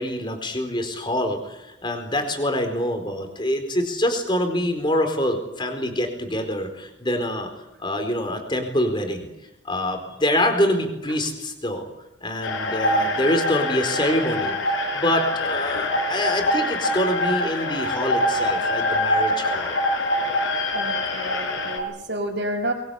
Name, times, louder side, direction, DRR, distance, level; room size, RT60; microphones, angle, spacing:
voice 1, 0.0-7.5 7.8-9.3 9.6-11.9 12.2-14.6 14.9-19.8, left 1 dB, 25° left, 6 dB, 4.4 m, -25 dB
sound 1, 12.4-21.8, left 1 dB, 70° left, 5.0 m, -24 dB
voice 2, 20.7-22.7, right 1 dB, 55° right, -5 dB, 5.0 m, -30 dB
23.5 x 23.0 x 8.4 m, 0.90 s
head